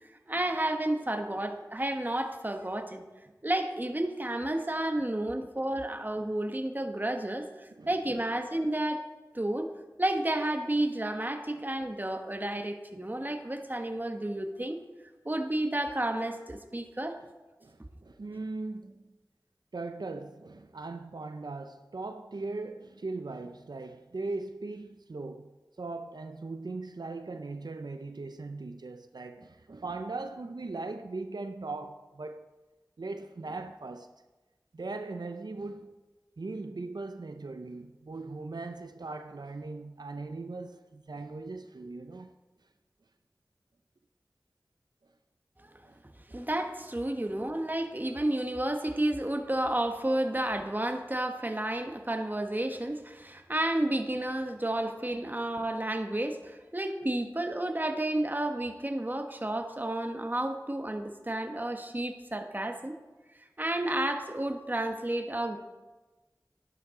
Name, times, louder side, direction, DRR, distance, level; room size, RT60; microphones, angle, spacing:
voice 1, 0.3-3.1 3.4-9.0 9.3-9.7 10.0-14.8 15.2-17.2 45.6-45.7 46.3-63.0 63.6-65.6, right 1 dB, 25° right, 1.0 m, -31 dB
voice 2, 7.7-8.2 17.6-19.0 19.7-25.5 25.8-32.4 33.0-34.1 34.7-35.9 36.4-42.3 45.9-46.0 46.3-46.4, right 3 dB, 75° right, 0.5 m, -39 dB
11.5 x 11.0 x 3.7 m
wide cardioid pair, 50°, 7 cm